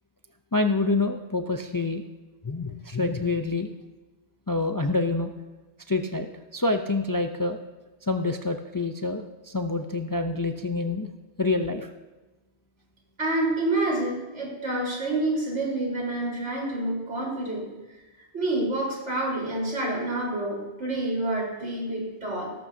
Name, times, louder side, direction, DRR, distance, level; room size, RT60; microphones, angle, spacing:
voice 1, 0.5-2.0 2.4-3.7 4.5-5.3 5.9-7.6 8.1-11.1 11.4-11.9, left 3 dB, 25° left, 6 dB, 0.5 m, -27 dB
voice 2, 13.2-17.6 18.3-22.5, right 2 dB, 85° right, -4 dB, 4.6 m, -28 dB
17.0 x 14.0 x 2.8 m, 1.2 s
omnidirectional pair, 1.2 m